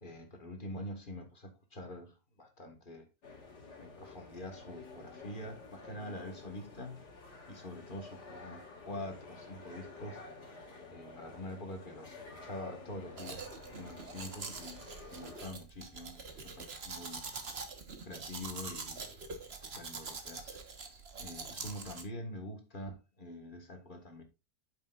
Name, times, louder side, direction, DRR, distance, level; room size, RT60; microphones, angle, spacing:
voice 1, 0.0-3.1 3.8-7.0 7.5-10.2 10.9-13.5 13.7-17.3 18.0-19.0 19.4-20.6 21.2-24.2, left 1 dB, 30° left, 1.8 m, -45 dB
sound 1, 3.2-15.5, left 3 dB, 75° left, 2.7 m, -51 dB
Domestic sounds home sounds, 13.2-22.0, right 4 dB, 40° right, 1.5 m, -44 dB
9.4 x 7.1 x 2.5 m
omnidirectional pair, 1.8 m